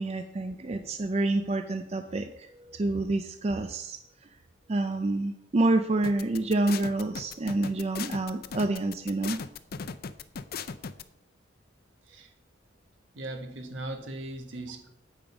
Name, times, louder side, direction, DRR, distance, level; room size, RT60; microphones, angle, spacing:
voice 1, 0.0-4.0 4.7-9.4, right 2 dB, 30° right, 7 dB, 0.4 m, -28 dB
sound 1, 6.0-11.0, left 6 dB, 50° left, 0.5 m, -37 dB
voice 2, 13.1-14.9, right 2 dB, 75° right, 5 dB, 1.3 m, -38 dB
8.6 x 5.2 x 7.2 m, 0.79 s
head